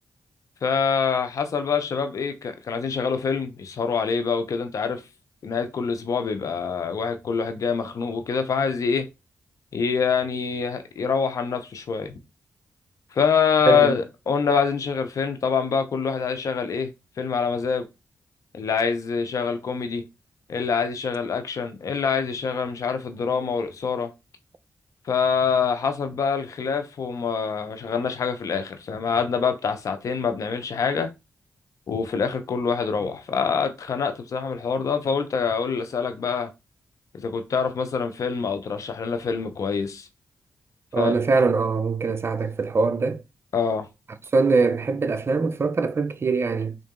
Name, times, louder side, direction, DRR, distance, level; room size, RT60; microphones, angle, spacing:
voice 1, 0.6-5.0 5.4-9.1 9.7-12.2 13.1-16.9 17.2-17.9 18.5-20.0 20.5-24.1 25.1-31.1 31.9-36.5 37.2-40.1 41.0-41.1 43.5-43.9, left 6 dB, 70° left, 0.8 m, -25 dB
voice 2, 13.7-14.0 40.9-43.2 44.3-46.8, right 4 dB, 45° right, 0.5 m, -22 dB
3.7 x 2.6 x 3.7 m
cardioid pair, 55°, 6 cm